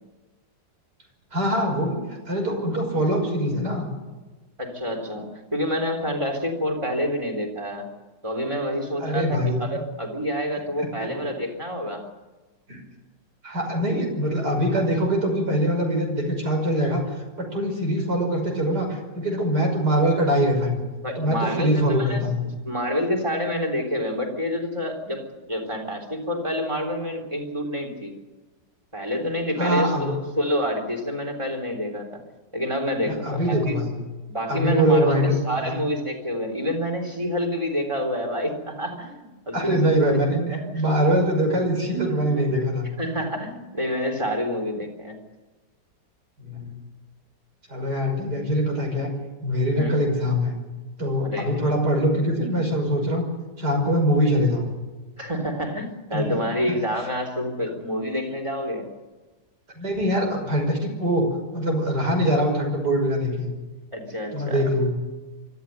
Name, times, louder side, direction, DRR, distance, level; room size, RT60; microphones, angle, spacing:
voice 1, 1.3-2.0 2.3-3.9 9.0-9.8 11.0-11.3 12.7-12.8 13.4-17.0 17.4-20.8 21.2-22.4 29.6-30.1 33.1-33.9 34.5-35.3 35.6-35.7 39.5-40.4 40.7-42.9 46.4-46.7 47.7-49.1 49.4-50.5 51.0-53.3 53.6-54.7 56.1-56.4 56.7-56.8 59.8-63.5 64.3-65.0, equal, 60° right, 2 dB, 6.3 m, -23 dB
voice 2, 4.6-7.9 8.2-12.1 21.0-22.2 22.6-28.1 28.9-32.2 32.5-33.8 34.3-35.1 35.4-40.8 43.0-45.2 49.7-50.0 51.2-51.7 55.2-58.9 63.9-64.6, equal, 15° right, 2 dB, 3.7 m, -28 dB
24.5 x 14.0 x 9.3 m, 1.2 s
omnidirectional pair, 2.0 m